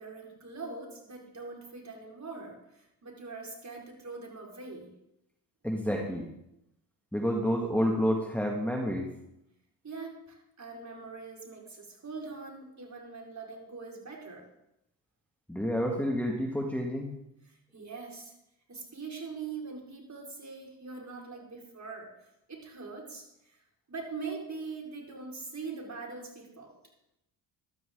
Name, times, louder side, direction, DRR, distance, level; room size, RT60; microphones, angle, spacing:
voice 1, 0.0-4.9 9.8-14.5 17.4-18.3 18.7-22.1 22.5-23.6 23.9-26.7, right 4 dB, 35° right, -1 dB, 5.0 m, -42 dB
voice 2, 5.6-6.3 7.1-9.1 15.5-17.1, equal, 5° left, 0 dB, 2.2 m, -29 dB
14.5 x 12.5 x 3.9 m, 0.84 s
hypercardioid pair, 60°, 50 cm